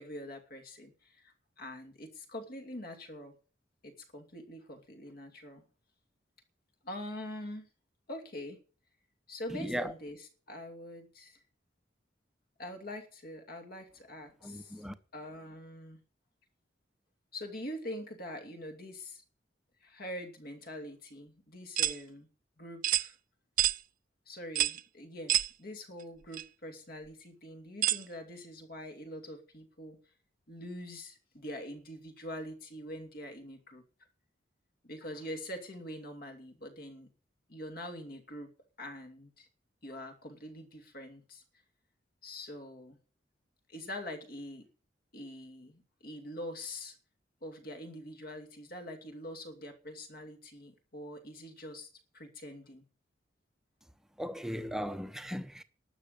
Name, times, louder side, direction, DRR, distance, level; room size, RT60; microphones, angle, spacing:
voice 1, 0.0-3.4 3.8-5.6 6.8-7.7 8.1-8.6 9.3-11.4 12.6-14.8 15.1-16.0 17.3-19.2 19.8-22.3 22.6-23.2 24.3-30.0 30.5-33.8 34.8-37.1 37.5-38.5 38.8-39.5 39.8-41.4 42.2-43.0 43.7-44.7 45.1-47.0 47.4-51.9 52.1-52.8, left 1 dB, 55° left, 2.7 m, -44 dB
voice 2, 9.5-9.9 14.4-14.9 54.2-55.6, equal, 5° right, 0.9 m, -37 dB
sound 1, 21.8-22.0 22.8-23.1 23.6-23.8 24.6-24.8 25.3-25.5 26.3-26.4 27.8-28.0, right 13 dB, 45° right, 0.5 m, -27 dB
12.0 x 7.0 x 8.6 m
head